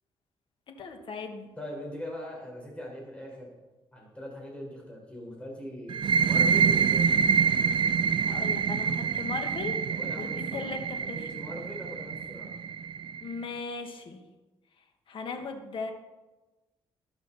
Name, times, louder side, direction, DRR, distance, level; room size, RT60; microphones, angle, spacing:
voice 1, 0.7-1.5 8.2-9.8 10.1-11.3 13.2-14.2 15.1-15.9, left 4 dB, 55° left, 5 dB, 1.8 m, -38 dB
voice 2, 1.6-3.5 3.9-7.2 9.9-10.8 11.2-12.6, equal, 10° left, -2 dB, 4.9 m, -41 dB
sound 1, 5.9-13.3, right 6 dB, 50° right, 0.6 m, -26 dB
13.0 x 11.5 x 4.3 m, 1.1 s
cardioid pair, 125°, 10 cm